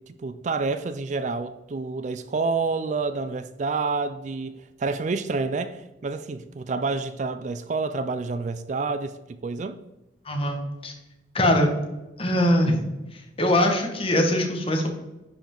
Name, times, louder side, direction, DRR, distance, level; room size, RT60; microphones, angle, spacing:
voice 1, 0.1-9.8, right 4 dB, 40° right, 11 dB, 0.3 m, -28 dB
voice 2, 10.3-10.6 10.8-10.9 11.3-11.7 12.2-12.8 13.4-14.9, left 1 dB, 30° left, 3 dB, 1.4 m, -21 dB
10.5 x 5.0 x 3.8 m, 0.99 s
head